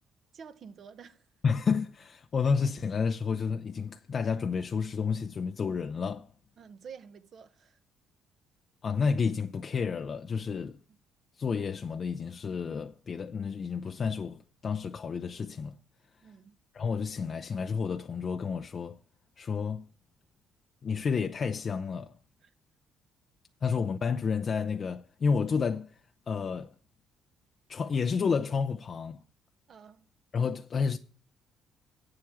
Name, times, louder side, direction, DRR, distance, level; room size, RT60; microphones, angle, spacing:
voice 1, 0.3-1.3 6.6-7.8 10.9-11.0 16.2-16.6 22.4-22.5 29.7-30.1, right 6 dB, 55° right, 1.0 m, -49 dB
voice 2, 1.4-6.3 8.8-10.8 11.4-15.8 16.7-19.0 19.4-19.9 20.8-22.2 23.6-26.0 26.3-26.7 27.7-29.2 30.3-31.0, left 5 dB, 45° left, 0.6 m, -30 dB
8.3 x 7.7 x 7.3 m
cardioid pair, 90°, 0 cm